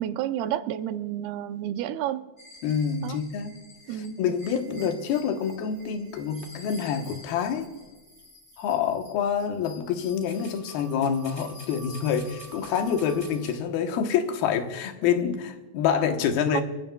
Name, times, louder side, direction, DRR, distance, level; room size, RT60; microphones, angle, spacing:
voice 1, 0.0-2.3 3.0-3.2 3.9-4.2 4.8-5.0 16.5-16.6, right 11 dB, 85° right, 2.6 m, -30 dB
sound 1, 2.4-13.6, equal, 15° left, 2.5 m, -48 dB
voice 2, 2.6-3.5 3.9-7.7 8.6-16.6, left 7 dB, 85° left, 3.0 m, -27 dB
28.0 x 15.0 x 2.3 m
omnidirectional pair, 4.3 m